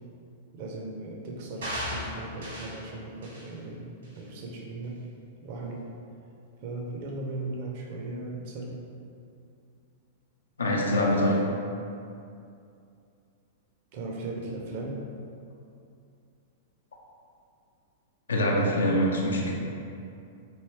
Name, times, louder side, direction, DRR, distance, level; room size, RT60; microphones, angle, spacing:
voice 1, 0.5-5.1 5.4-5.9 6.6-8.8 13.9-15.0, right 2 dB, 50° right, -1 dB, 0.6 m, -37 dB
sound 1, 1.6-2.8 3.2-3.5 4.0-4.2, equal, 75° right, 1.4 m, -36 dB
voice 2, 10.6-11.5 18.3-19.5, equal, 80° left, -1 dB, 0.5 m, -24 dB
3.1 x 3.0 x 3.0 m, 2.5 s
figure-of-eight pair, 100°, 0 cm